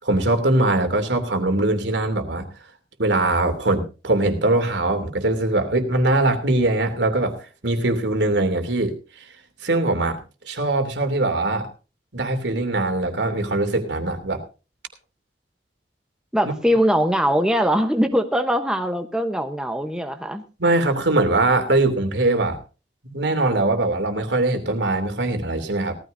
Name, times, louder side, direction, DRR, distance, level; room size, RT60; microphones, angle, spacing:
voice 1, 0.0-2.5 3.0-9.0 9.6-10.2 10.4-11.7 12.1-14.4 20.6-22.6 23.0-26.0, right 2 dB, 85° right, 6 dB, 3.0 m, -21 dB
voice 2, 16.3-20.4, equal, 5° right, 6 dB, 1.0 m, -21 dB
18.0 x 14.0 x 2.7 m, 0.33 s
head